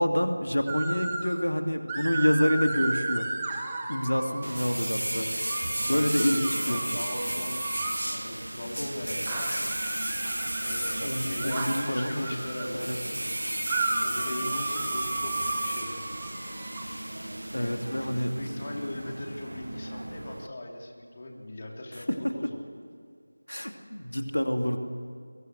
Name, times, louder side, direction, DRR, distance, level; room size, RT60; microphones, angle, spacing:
voice 1, 0.0-3.3 3.9-5.3 5.8-6.8 10.6-12.3 12.7-13.0 17.5-18.3 21.9-22.3 23.5-24.8, equal, 80° left, 5 dB, 2.4 m, -27 dB
sound 1, 0.7-1.4 1.9-4.7 5.4-8.1 9.3-12.7 13.7-16.8, right 3 dB, 15° right, 1.9 m, -34 dB
voice 2, 4.1-4.5 5.6-7.7 8.0-9.6 10.6-13.6 14.0-16.1 17.5-22.7, left 1 dB, 35° left, 0 dB, 3.3 m, -39 dB
sound 2, 4.4-20.5, right 1 dB, 70° right, 1.0 m, -34 dB
22.0 x 21.5 x 8.0 m, 2.3 s
figure-of-eight pair, 170°, 0 cm